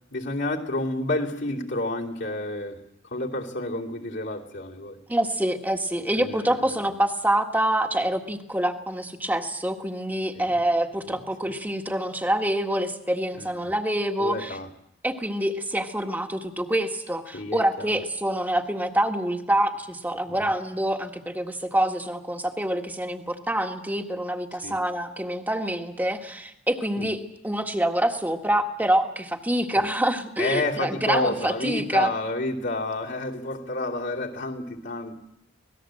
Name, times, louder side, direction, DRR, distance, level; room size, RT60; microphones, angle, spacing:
voice 1, 0.1-5.0 6.1-6.6 10.3-10.5 13.4-13.7 14.2-14.7 17.3-18.0 20.3-20.4 24.6-24.8 27.0-27.1 29.7-29.8 30.4-35.2, left 2 dB, 65° left, -3 dB, 2.9 m, -30 dB
voice 2, 5.1-14.6 15.0-32.1, right 1 dB, 10° right, 4 dB, 1.7 m, -26 dB
26.0 x 19.0 x 7.7 m, 0.79 s
head